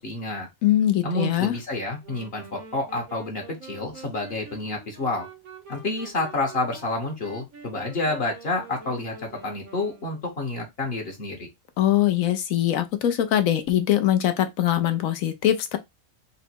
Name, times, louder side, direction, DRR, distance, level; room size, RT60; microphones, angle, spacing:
voice 1, 0.0-0.5 1.0-5.3 5.7-11.5, left 2 dB, 50° left, 1.2 m, -29 dB
voice 2, 0.6-1.5 11.8-15.8, left 12 dB, 75° left, 1.1 m, -22 dB
sound 1, 2.0-10.5, right 4 dB, 85° right, 1.5 m, -46 dB
3.9 x 2.2 x 4.3 m
omnidirectional pair, 1.4 m